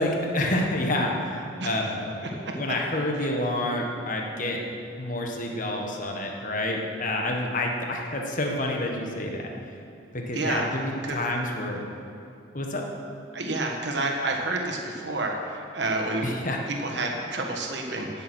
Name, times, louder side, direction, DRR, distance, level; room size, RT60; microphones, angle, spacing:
voice 1, 0.0-2.2 2.5-4.6 5.0-9.4 10.1-11.8 12.5-12.8 16.2-16.6, left 1 dB, 45° left, 1 dB, 1.4 m, -28 dB
voice 2, 10.3-10.7 11.0-11.2 13.3-16.3 16.7-18.2, right 2 dB, 60° right, 1 dB, 1.5 m, -29 dB
15.5 x 7.2 x 6.3 m, 2.6 s
head